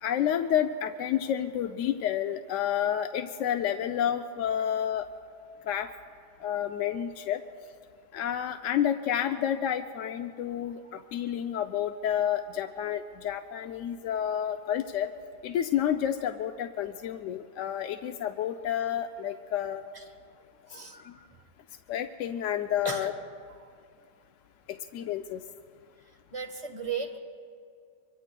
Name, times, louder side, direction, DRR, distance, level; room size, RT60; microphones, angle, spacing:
voice 1, 0.0-5.1 5.7-5.9 6.4-7.4 8.1-15.1 15.4-19.8 21.9-23.1 24.7-25.4, left 10 dB, 85° left, 7 dB, 0.9 m, -30 dB
voice 2, 20.7-21.3 22.8-23.1 23.6-23.7 26.3-27.2, right 5 dB, 30° right, 5 dB, 1.2 m, -36 dB
25.5 x 24.0 x 2.2 m, 2.3 s
omnidirectional pair, 1.3 m